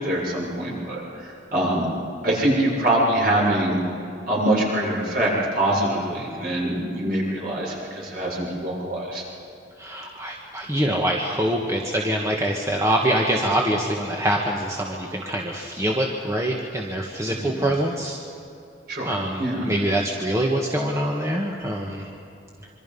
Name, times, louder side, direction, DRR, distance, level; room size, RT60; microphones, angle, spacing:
voice 1, 0.0-1.9 2.2-3.8 4.3-9.2 17.3-17.6 18.9-19.7, right 1 dB, 50° right, -3 dB, 7.1 m, -24 dB
voice 2, 9.8-18.2 19.0-22.1, right 1 dB, 15° right, -1 dB, 1.6 m, -24 dB
27.0 x 24.5 x 5.5 m, 2.8 s
head